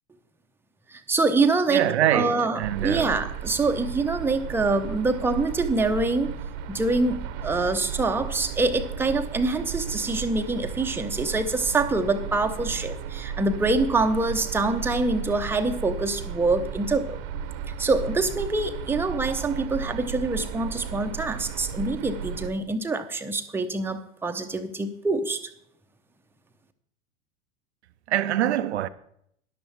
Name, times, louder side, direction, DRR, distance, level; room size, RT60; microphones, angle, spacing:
voice 1, 0.9-6.3 6.7-17.2 17.8-25.5, right 3 dB, 5° right, 0.8 m, -25 dB
voice 2, 1.7-3.2 28.1-28.9, right 12 dB, 65° right, 0.6 m, -24 dB
sound 1, 2.6-22.5, right 7 dB, 45° right, 1.0 m, -34 dB
13.0 x 11.0 x 3.4 m
figure-of-eight pair, 85°, 37 cm